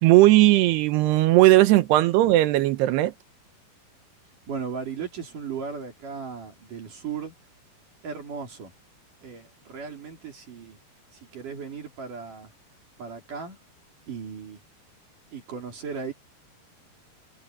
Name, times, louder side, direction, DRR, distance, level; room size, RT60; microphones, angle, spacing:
voice 1, 0.0-3.1, right 16 dB, 80° right, 2.9 m, -17 dB
voice 2, 4.5-7.3 8.0-8.7 9.2-10.8 11.1-12.5 13.0-13.6 14.1-14.6 15.3-16.1, right 6 dB, 50° right, 4.7 m, -36 dB
omnidirectional pair, 4.9 m